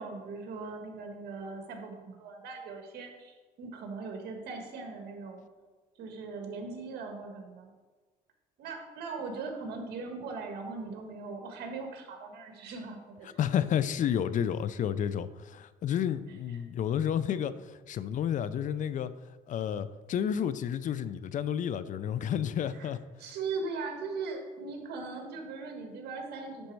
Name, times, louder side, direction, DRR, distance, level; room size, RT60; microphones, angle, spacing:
voice 1, 0.0-5.4 6.0-7.7 8.6-13.3 22.7-22.9 23.2-26.7, right 4 dB, 75° right, 3 dB, 1.6 m, -39 dB
voice 2, 13.4-19.1 19.5-23.0, left 9 dB, 50° left, 14 dB, 0.4 m, -31 dB
10.5 x 4.3 x 4.6 m, 1.3 s
cardioid pair, 110°, 17 cm